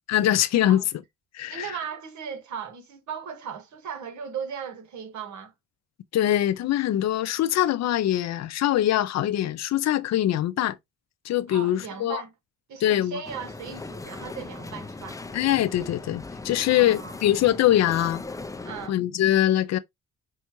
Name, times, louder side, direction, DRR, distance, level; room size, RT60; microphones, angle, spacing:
voice 1, 0.1-0.8 1.3-1.8 6.1-10.8 11.2-12.2 12.8-13.2 15.3-18.2 18.9-19.8, left 12 dB, 60° left, 0.5 m, -23 dB
voice 2, 1.5-5.5 11.5-12.3 12.7-15.2 16.7-17.2 18.6-19.0, right 7 dB, 70° right, 1.4 m, -37 dB
sound 1, 13.2-18.9, left 3 dB, 10° left, 0.5 m, -39 dB
5.4 x 2.3 x 2.9 m
cardioid pair, 90°, 30 cm